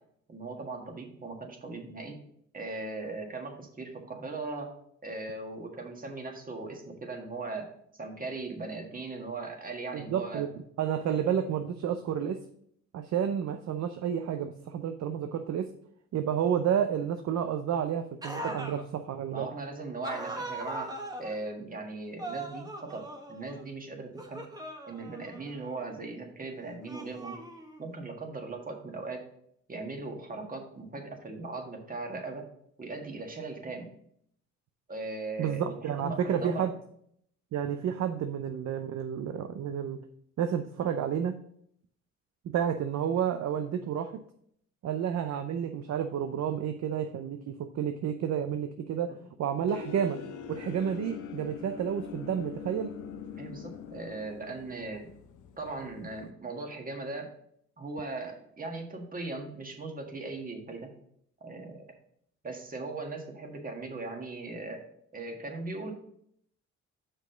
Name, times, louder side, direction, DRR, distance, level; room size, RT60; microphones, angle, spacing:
voice 1, 0.3-2.2 2.5-7.7 8.0-10.5 11.2-11.4 18.4-18.6 19.3-20.9 21.2-24.4 24.9-27.4 27.8-29.3 29.7-32.5 32.8-33.9 34.9-36.7 53.4-55.1 55.6-57.3 57.8-60.9 61.4-61.9 62.4-64.8 65.1-65.9, right 3 dB, 30° right, 3 dB, 1.7 m, -39 dB
voice 2, 9.9-10.5 10.8-12.4 12.9-15.7 16.1-19.5 35.4-36.7 37.5-40.0 40.4-41.3 42.4-44.1 44.8-49.1 49.4-50.2 50.5-52.9, right 8 dB, 65° right, 7 dB, 0.6 m, -30 dB
sound 1, 18.2-18.8 20.0-21.4 22.2-23.7 24.2-25.9 26.8-27.9, right 2 dB, 15° right, 1.2 m, -40 dB
sound 2, 49.7-56.3, left 8 dB, 75° left, 0.7 m, -43 dB
6.1 x 5.3 x 5.0 m, 0.67 s
cardioid pair, 90°, 30 cm